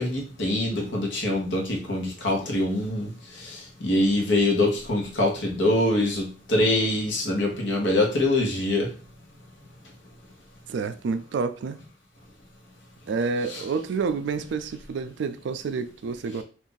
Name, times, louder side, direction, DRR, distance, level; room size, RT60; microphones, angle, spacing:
voice 1, 0.0-3.1 3.4-8.9 13.4-13.6, left 1 dB, 65° left, 1.0 m, -24 dB
voice 2, 10.7-11.8 13.1-16.4, right 4 dB, 65° right, 0.3 m, -29 dB
2.5 x 2.4 x 3.8 m
head